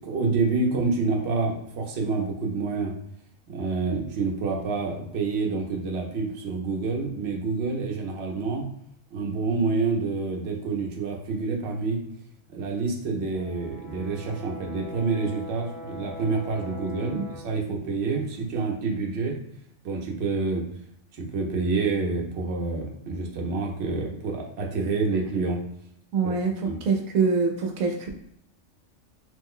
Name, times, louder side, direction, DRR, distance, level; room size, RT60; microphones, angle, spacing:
voice 1, 0.0-2.9 3.5-8.6 9.1-12.0 12.5-19.4 19.8-20.6 21.1-25.6 26.2-26.4 26.6-26.8, right 4 dB, 60° right, 0 dB, 0.9 m, -28 dB
Brass instrument, 13.3-17.6, left 1 dB, 30° left, 0.8 m, -42 dB
voice 2, 16.8-17.2 26.1-28.2, right 4 dB, 85° right, 3 dB, 1.0 m, -25 dB
3.1 x 2.1 x 3.6 m, 0.71 s
omnidirectional pair, 1.4 m